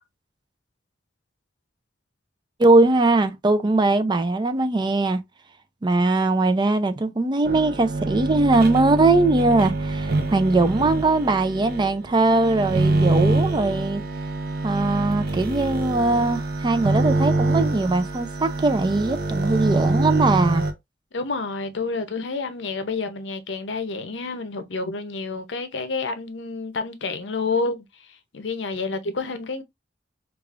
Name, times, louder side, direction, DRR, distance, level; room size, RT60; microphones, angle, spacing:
voice 1, 2.6-5.2 5.8-14.0 14.6-20.7, right 2 dB, 25° right, 0.4 m, -20 dB
sound 1, 7.4-20.7, right 2 dB, 60° right, 0.8 m, -25 dB
voice 2, 21.1-27.8 28.3-29.6, left 4 dB, 75° left, 0.7 m, -29 dB
4.9 x 2.4 x 2.4 m
head